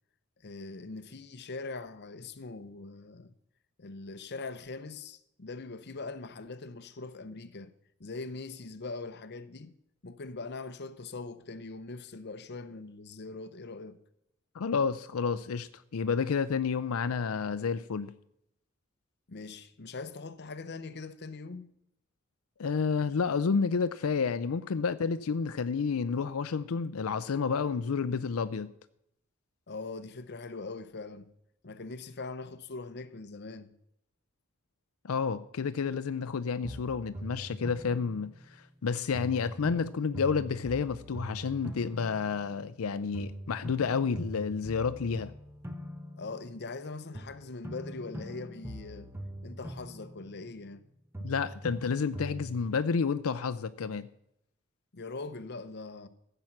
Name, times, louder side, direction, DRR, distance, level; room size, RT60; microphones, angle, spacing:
voice 1, 0.4-3.3 3.8-7.7 8.0-9.7 10.0-14.0 19.3-21.7 29.7-31.3 31.6-33.7 46.2-49.1 49.4-50.9 54.9-56.1, left 3 dB, 55° left, 0.8 m, -42 dB
voice 2, 14.5-18.1 22.6-28.7 35.0-38.3 38.8-45.3 51.2-54.1, left 5 dB, 90° left, 0.5 m, -30 dB
sound 1, 36.6-38.8 39.1-42.9 43.1-46.8 47.1-50.9 51.1-52.7, equal, 10° right, 1.2 m, -43 dB
15.0 x 7.9 x 5.9 m
head